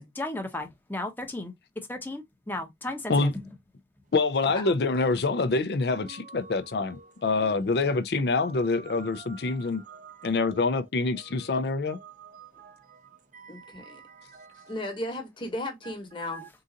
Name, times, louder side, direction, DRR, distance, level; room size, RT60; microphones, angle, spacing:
voice 1, 0.0-1.5 1.9-3.4, left 2 dB, 10° left, 0.8 m, -35 dB
voice 2, 4.1-9.8 10.2-12.0, left 3 dB, 65° left, 0.4 m, -26 dB
voice 3, 5.9-7.1 7.4-7.6 7.9-8.0 8.4-10.6 11.2-11.5 11.9-14.7 15.8-15.9 16.3-16.5, right 4 dB, 45° right, 0.5 m, -48 dB
voice 4, 13.5-14.0 14.7-16.4, left 1 dB, 25° left, 1.1 m, -35 dB
3.8 x 2.5 x 3.9 m
head